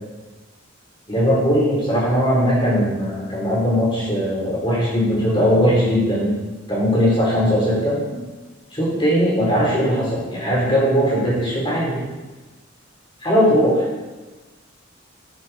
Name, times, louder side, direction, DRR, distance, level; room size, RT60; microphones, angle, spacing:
voice 1, 1.1-6.4 6.7-8.2 8.7-12.0 13.2-13.9, equal, 25° left, -6 dB, 4.6 m, -19 dB
11.5 x 9.7 x 4.6 m, 1.2 s
head